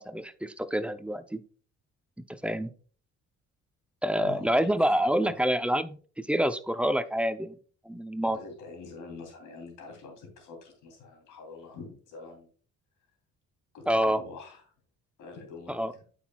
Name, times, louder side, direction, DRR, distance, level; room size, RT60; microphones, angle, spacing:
voice 1, 0.0-1.4 2.3-2.7 4.0-7.6 7.9-8.4 13.9-14.2 15.7-15.9, equal, 5° right, 10 dB, 0.6 m, -27 dB
voice 2, 4.2-4.7 5.0-5.4 8.2-12.5 13.7-14.6 15.2-16.0, left 4 dB, 85° left, 3 dB, 3.1 m, -45 dB
8.8 x 6.3 x 2.3 m, 0.41 s
cardioid pair, 90°, 30 cm